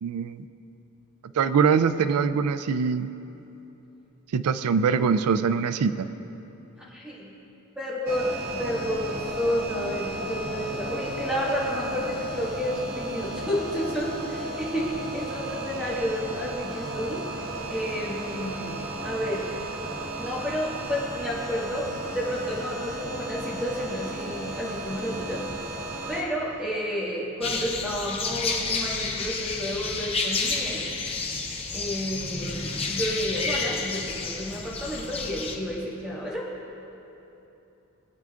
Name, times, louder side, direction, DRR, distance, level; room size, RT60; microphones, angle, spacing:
voice 1, 0.0-0.4 1.4-3.1 4.3-6.1, right 6 dB, 90° right, 13 dB, 0.4 m, -23 dB
voice 2, 6.9-7.3 7.8-17.2 17.7-19.5 20.2-25.4 26.1-30.8 31.7-36.4, equal, 5° right, -8 dB, 1.8 m, -31 dB
sound 1, 8.1-26.2, right 1 dB, 40° right, 0.9 m, -34 dB
sound 2, 27.4-35.6, left 4 dB, 25° left, 0.6 m, -30 dB
20.0 x 8.8 x 2.5 m, 3.0 s
head